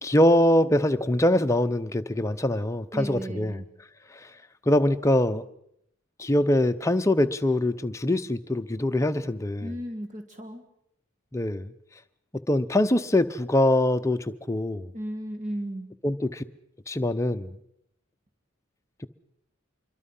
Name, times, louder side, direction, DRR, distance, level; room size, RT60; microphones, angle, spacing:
voice 1, 0.0-3.6 4.1-4.3 4.7-5.4 6.2-9.7 11.3-11.7 12.5-14.9 16.0-16.4 16.9-17.5, left 1 dB, 15° left, 0.8 m, -23 dB
voice 2, 2.9-3.7 9.6-10.6 14.9-15.9, right 1 dB, 35° right, 1.6 m, -35 dB
26.0 x 23.0 x 5.6 m
head